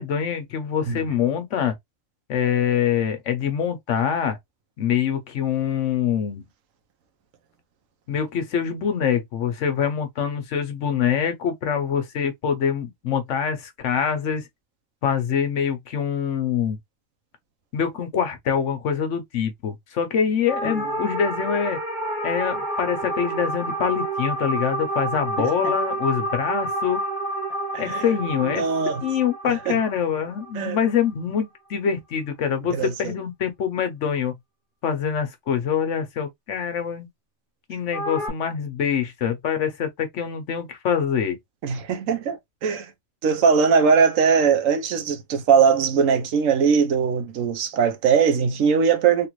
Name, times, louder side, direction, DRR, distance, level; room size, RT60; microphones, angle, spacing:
voice 1, 0.0-1.8 2.3-4.4 4.8-6.5 8.1-14.5 15.0-16.8 17.7-21.8 22.2-27.0 27.8-28.7 29.0-34.4 34.8-37.1 37.7-41.4, left 8 dB, 65° left, 1.1 m, -25 dB
sound 1, 20.5-31.0 37.9-38.3, right 1 dB, 25° left, 1.2 m, -29 dB
voice 2, 27.7-28.0 28.4-29.0 29.4-29.8 30.5-30.8 32.7-32.9 41.6-42.9 43.2-49.3, right 6 dB, 80° right, 1.1 m, -20 dB
3.4 x 2.4 x 3.0 m
omnidirectional pair, 1.4 m